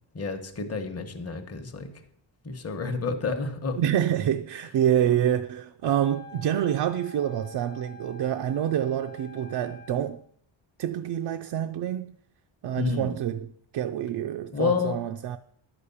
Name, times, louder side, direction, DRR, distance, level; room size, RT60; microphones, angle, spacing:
voice 1, 0.1-1.9 2.4-3.8 12.8-13.2 14.5-15.0, left 4 dB, 30° left, 1.0 m, -29 dB
voice 2, 3.8-10.2 10.8-12.2 12.6-15.4, right 10 dB, 60° right, 0.5 m, -27 dB
Wind instrument woodwind instrument, 5.8-10.2, left 3 dB, 10° left, 0.6 m, -47 dB
10.5 x 5.1 x 7.0 m
wide cardioid pair, 140°, 47 cm